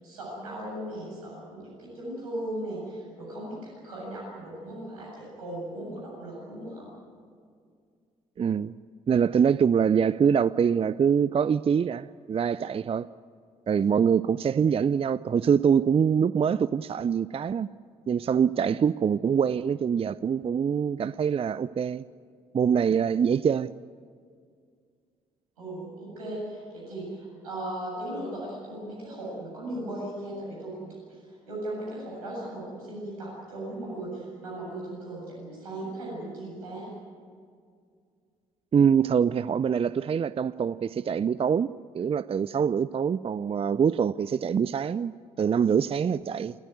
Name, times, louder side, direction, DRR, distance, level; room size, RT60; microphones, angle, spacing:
voice 1, 0.0-6.9 25.6-30.9 31.5-36.9, right 1 dB, 85° right, 7.8 m, -37 dB
voice 2, 8.4-8.7 9.1-13.1 13.7-17.7 18.1-22.0 22.5-23.7 38.7-46.5, right 7 dB, 30° right, 0.5 m, -24 dB
28.5 x 14.5 x 9.4 m
figure-of-eight pair, 45°, 18 cm